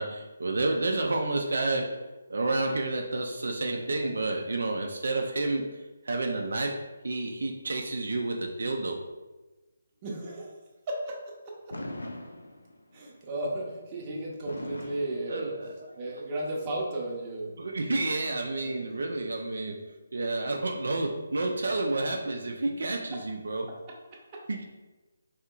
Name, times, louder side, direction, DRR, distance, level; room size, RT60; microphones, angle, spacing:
voice 1, 0.0-9.0 15.3-15.9 17.6-19.9 20.1-23.7 24.5-24.6, right 2 dB, 70° right, 2 dB, 0.3 m, -30 dB
voice 2, 10.0-10.5 10.9-11.2 11.5-11.8 12.9-15.6 16.0-17.6 18.8-18.9 23.1-23.2 23.7-24.4, right 1 dB, 25° right, -3 dB, 0.7 m, -35 dB
Fireworks, 11.7-13.0 14.5-16.0, left 1 dB, 85° left, 0.4 m, -40 dB
3.5 x 2.8 x 2.4 m, 1.2 s
figure-of-eight pair, 150°, 0 cm